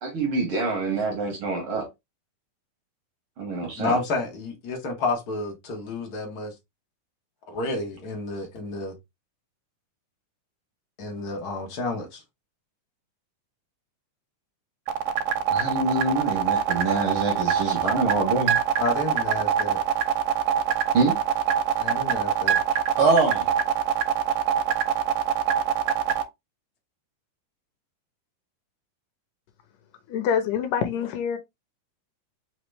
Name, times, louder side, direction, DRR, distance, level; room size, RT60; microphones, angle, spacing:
voice 1, 0.0-1.9 3.4-4.0 15.5-18.6 20.9-21.2 23.0-23.5, right 3 dB, 55° right, 1.6 m, -25 dB
voice 2, 3.8-6.5 7.5-8.9 11.0-12.2 18.8-19.8 21.8-22.6, left 3 dB, 45° left, 1.2 m, -30 dB
sound 1, 14.9-26.2, right 9 dB, 85° right, 2.4 m, -23 dB
voice 3, 30.1-31.4, left 7 dB, 90° left, 2.2 m, -25 dB
5.1 x 3.0 x 3.3 m
omnidirectional pair, 3.8 m